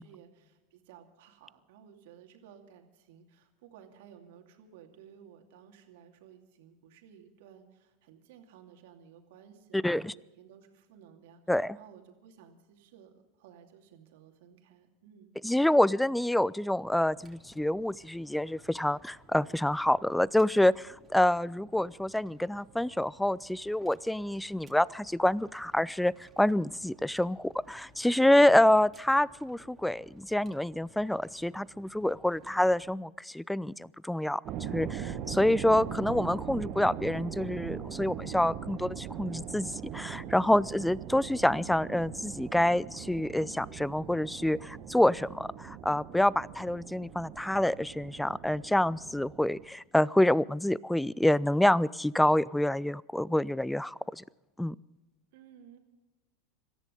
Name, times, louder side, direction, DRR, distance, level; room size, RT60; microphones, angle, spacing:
voice 1, 0.0-15.3 55.3-55.8, right 8 dB, 60° right, 4 dB, 2.7 m, -56 dB
voice 2, 9.7-10.1 11.5-11.8 15.4-34.4 34.7-54.2 54.6-54.8, left 1 dB, 5° left, 24 dB, 0.4 m, -27 dB
sound 1, 16.8-32.9, right 3 dB, 20° right, 3.0 m, -58 dB
sound 2, 34.4-49.6, right 9 dB, 45° right, 1.5 m, -41 dB
26.0 x 14.0 x 3.9 m, 1.1 s
figure-of-eight pair, 85°, 0 cm